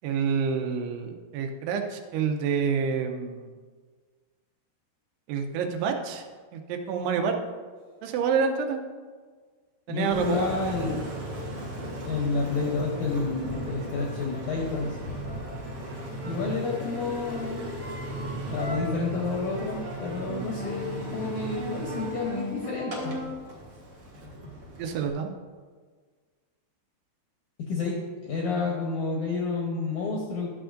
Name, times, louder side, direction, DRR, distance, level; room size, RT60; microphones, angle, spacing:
voice 1, 0.0-3.5 5.3-6.2 6.5-7.4 8.0-8.8 9.9-10.5 24.8-25.3, right 6 dB, 85° right, 4 dB, 2.8 m, -28 dB
voice 2, 9.9-11.1 12.0-15.0 16.2-17.7 18.5-23.2 27.7-30.5, left 4 dB, 80° left, -2 dB, 1.8 m, -30 dB
Engine, 10.1-25.1, right 1 dB, 70° right, 1.2 m, -36 dB
12.0 x 6.9 x 2.5 m, 1.5 s
omnidirectional pair, 4.7 m